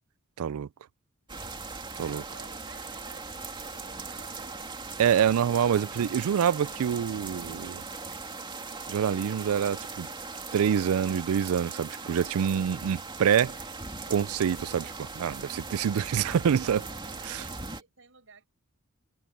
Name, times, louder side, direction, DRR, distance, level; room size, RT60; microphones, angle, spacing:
voice 1, 0.4-0.7 2.0-2.2 5.0-7.8 8.9-10.1 10.5-13.6 14.1-16.8 17.3-17.4, right 8 dB, 85° right, 0.4 m, -26 dB
sound 1, 1.3-17.8, right 3 dB, 20° right, 2.5 m, -39 dB
voice 2, 2.0-5.5 15.8-18.5, right 4 dB, 65° right, 7.2 m, -56 dB
head